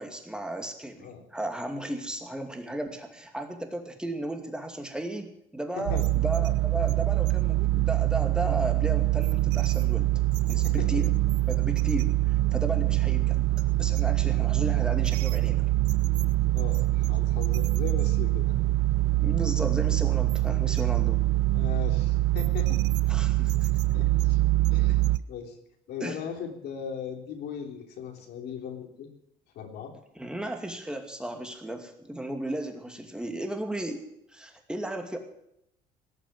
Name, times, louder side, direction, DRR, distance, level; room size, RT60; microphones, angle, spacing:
voice 1, 0.0-10.1 10.5-11.1 11.5-12.1 12.5-13.5 13.8-15.7 19.2-21.2 23.1-23.5 26.0-26.2 30.2-34.0 34.3-35.2, right 1 dB, 5° right, 4 dB, 2.5 m, -34 dB
sound 1, 5.9-25.2, right 17 dB, 90° right, 0.6 m, -24 dB
voice 2, 10.6-11.0 16.5-18.5 21.5-22.9 23.9-24.4 24.7-25.6 25.9-29.1 29.5-29.9, left 7 dB, 75° left, 3 dB, 3.4 m, -38 dB
18.0 x 7.0 x 9.4 m, 0.79 s
cardioid pair, 110°, 17 cm